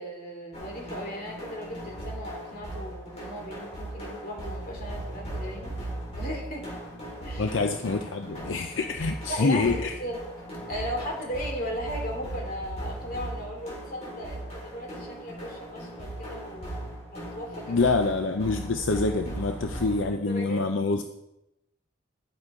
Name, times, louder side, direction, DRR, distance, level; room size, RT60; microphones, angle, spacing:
voice 1, 0.0-5.8 6.2-6.7 7.2-7.5 9.3-10.2 10.7-17.9 20.2-20.6, equal, 50° left, 0 dB, 2.8 m, -36 dB
sound 1, 0.5-20.0, right 1 dB, 35° left, 4.4 m, -38 dB
voice 2, 7.4-10.0 17.7-21.0, left 3 dB, 80° left, 6 dB, 0.6 m, -26 dB
11.5 x 7.5 x 4.9 m, 0.87 s
head